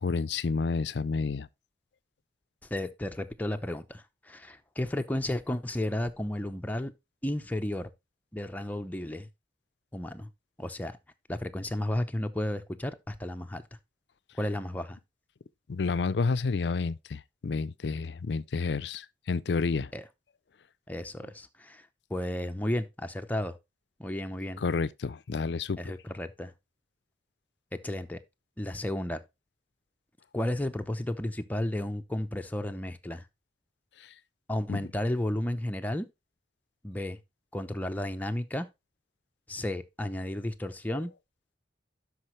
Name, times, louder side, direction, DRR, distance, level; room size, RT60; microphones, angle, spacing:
voice 1, 0.0-1.5 15.7-19.9 24.6-25.8 34.7-34.8 40.9-41.0, left 4 dB, 70° left, 0.5 m, -30 dB
voice 2, 2.7-6.9 7.2-7.9 8.3-9.3 9.9-10.3 10.6-11.0 11.3-13.6 14.4-15.0 19.9-20.0 20.9-23.6 24.0-24.6 25.8-26.5 27.7-28.2 28.6-29.2 30.3-33.2 34.5-36.1 36.8-37.2 37.5-38.7 39.5-41.1, left 1 dB, 10° left, 0.7 m, -33 dB
12.5 x 5.0 x 3.1 m
head